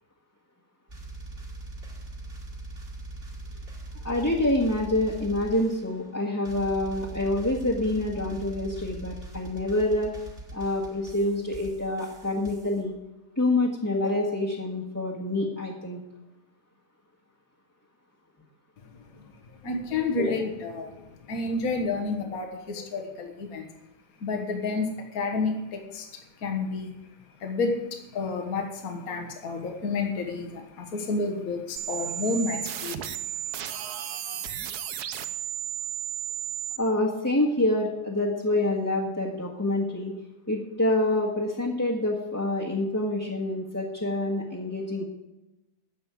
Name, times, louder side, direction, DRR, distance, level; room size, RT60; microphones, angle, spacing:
sound 1, 0.9-6.1 6.4-12.8, right 2 dB, 35° right, 2.6 m, -41 dB
voice 1, 4.0-10.1 10.5-12.9 13.3-16.0 20.2-20.3 36.8-40.2 40.5-45.0, left 1 dB, 10° left, -6 dB, 1.5 m, -27 dB
voice 2, 19.6-21.0 21.3-23.7 24.2-26.1 26.4-26.9 27.4-33.0 34.1-34.2 34.5-34.6, left 3 dB, 60° left, 3 dB, 1.8 m, -30 dB
sound 2, 31.8-36.8, right 11 dB, 70° right, 1.3 m, -34 dB
14.0 x 5.5 x 9.3 m, 0.98 s
omnidirectional pair, 1.8 m